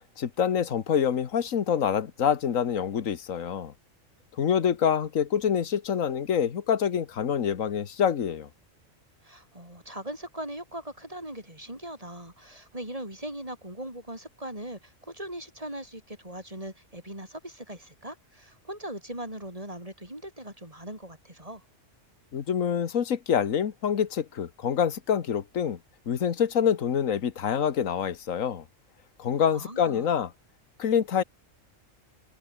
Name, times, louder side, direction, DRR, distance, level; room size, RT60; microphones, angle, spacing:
voice 1, 0.2-3.7 4.4-8.5 22.3-25.8 26.1-28.6 29.2-30.3 30.8-31.2, left 8 dB, 80° left, 1.6 m, -26 dB
voice 2, 9.2-21.6 29.4-30.1, right 1 dB, 25° right, 6.4 m, -40 dB
omnidirectional pair, 1.4 m